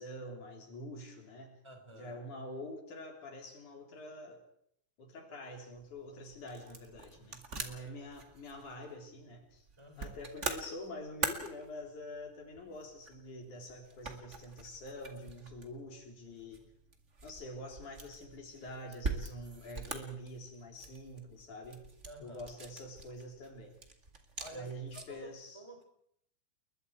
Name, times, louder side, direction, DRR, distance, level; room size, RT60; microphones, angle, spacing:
voice 1, 0.0-1.5 1.9-4.4 5.0-9.7 10.0-16.6 17.2-21.9 22.2-23.8 24.5-25.6, left 1 dB, 75° left, 2 dB, 5.1 m, -46 dB
voice 2, 1.6-2.3 7.7-7.9 9.8-10.2 22.0-22.5 24.4-25.8, right 1 dB, 10° right, 4 dB, 3.9 m, -51 dB
sound 1, 5.7-25.3, right 3 dB, 25° right, 1.9 m, -44 dB
30.0 x 21.0 x 4.7 m, 0.69 s
omnidirectional pair, 3.4 m